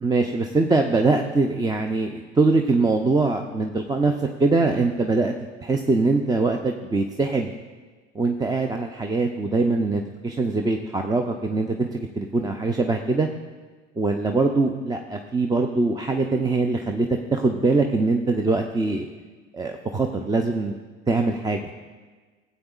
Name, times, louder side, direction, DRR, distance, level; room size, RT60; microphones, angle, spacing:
voice 1, 0.0-5.3 5.6-7.5 8.1-13.3 14.0-19.1 19.5-20.7 21.1-21.7, right 3 dB, 10° right, 4 dB, 0.5 m, -23 dB
16.5 x 8.1 x 2.4 m, 1.4 s
hypercardioid pair, 75°, 36 cm